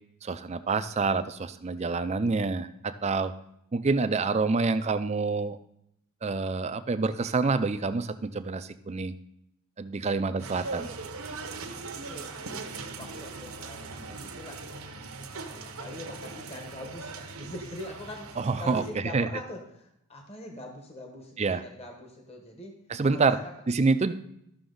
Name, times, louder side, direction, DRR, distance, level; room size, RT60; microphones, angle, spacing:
voice 1, 0.2-3.3 3.7-5.6 6.2-9.1 9.8-10.9 18.4-19.3 21.4-21.6 22.9-23.4 23.7-24.1, right 4 dB, 30° right, 11 dB, 0.4 m, -27 dB
sound 1, 10.4-18.9, right 4 dB, 70° right, 0.9 m, -40 dB
voice 2, 12.1-12.7 13.0-15.0 15.3-18.3 18.6-22.8 23.1-23.5, left 1 dB, 30° left, 2 dB, 1.1 m, -43 dB
13.0 x 6.0 x 3.9 m, 0.79 s
head